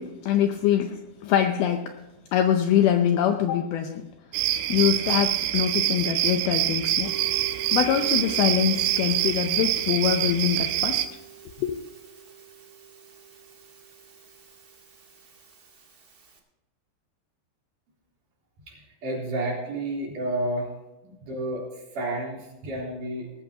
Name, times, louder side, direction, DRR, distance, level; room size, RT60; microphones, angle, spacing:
voice 1, 0.0-2.0 2.3-4.1 4.4-7.1 7.7-11.1 11.6-11.8, left 9 dB, 80° left, 6 dB, 2.3 m, -24 dB
sound 1, 4.3-11.1, right 13 dB, 85° right, 2.8 m, -25 dB
Musical instrument, 6.9-16.4, right 9 dB, 65° right, 0.9 m, -44 dB
voice 2, 18.7-20.7 21.1-23.3, right 1 dB, 50° right, -3 dB, 4.7 m, -31 dB
18.5 x 14.5 x 2.9 m, 1.0 s
omnidirectional pair, 5.0 m